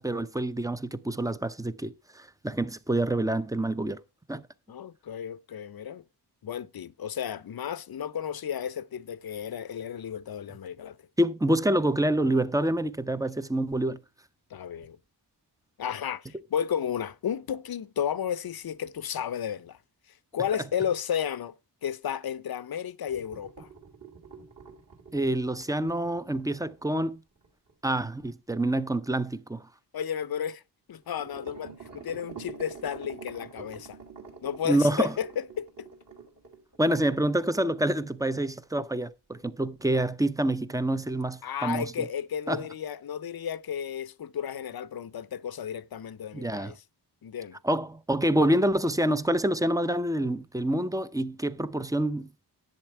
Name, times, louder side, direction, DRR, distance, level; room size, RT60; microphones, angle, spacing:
voice 1, 0.0-4.0 4.3-4.4 11.2-14.0 25.1-27.2 27.8-29.7 34.7-35.1 36.8-41.9 42.5-42.6 46.3-46.7 47.6-52.4, right 1 dB, 10° right, 0.5 m, -27 dB
voice 2, 4.7-6.0 6.4-11.0 14.5-15.0 15.8-19.8 20.1-21.5 21.8-23.7 29.9-30.6 30.9-34.0 34.4-35.9 41.4-46.8 47.2-47.6, left 8 dB, 55° left, 0.6 m, -33 dB
sound 1, 23.1-27.7 31.1-38.0 38.3-38.4 38.8-38.9 39.3-39.4, right 5 dB, 45° right, 2.8 m, -47 dB
11.0 x 7.9 x 4.5 m
wide cardioid pair, 100°, 43 cm